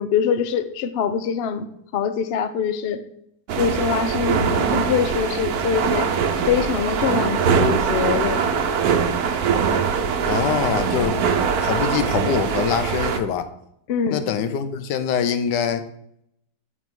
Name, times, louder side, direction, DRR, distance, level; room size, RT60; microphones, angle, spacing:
voice 1, 0.0-3.0 3.6-6.1 6.5-8.7 13.9-14.2, left 7 dB, 70° left, 11 dB, 0.5 m, -24 dB
sound 1, 3.5-13.2, right 6 dB, 70° right, 1.2 m, -22 dB
voice 2, 10.3-11.2 11.6-13.5 14.1-15.8, left 7 dB, 90° left, 10 dB, 1.3 m, -24 dB
8.7 x 6.1 x 3.7 m, 0.75 s
omnidirectional pair, 1.8 m